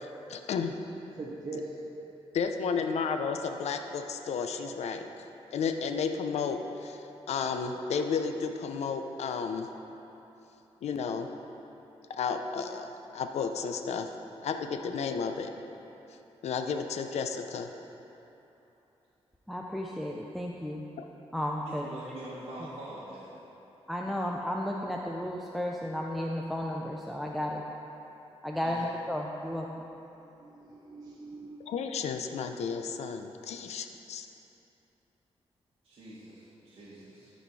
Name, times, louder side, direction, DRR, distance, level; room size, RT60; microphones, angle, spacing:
voice 1, 0.3-0.7 2.3-5.1 5.5-9.7 10.8-11.3 12.2-14.1 14.4-15.5 16.4-17.7 21.0-21.1 31.7-34.3, left 5 dB, 90° left, 6 dB, 0.5 m, -32 dB
voice 2, 1.2-1.7 4.6-4.7 10.2-10.3 30.4-31.6, right 3 dB, 35° right, -3 dB, 0.6 m, -42 dB
voice 3, 19.5-20.9 21.3-21.9 23.9-27.7 28.4-29.9, left 1 dB, ahead, -1 dB, 0.4 m, -33 dB
voice 4, 21.6-23.3 28.6-28.7 35.8-37.3, right 1 dB, 60° right, -10 dB, 1.6 m, -44 dB
12.5 x 4.3 x 4.7 m, 3.0 s
wide cardioid pair, 140°, 11 cm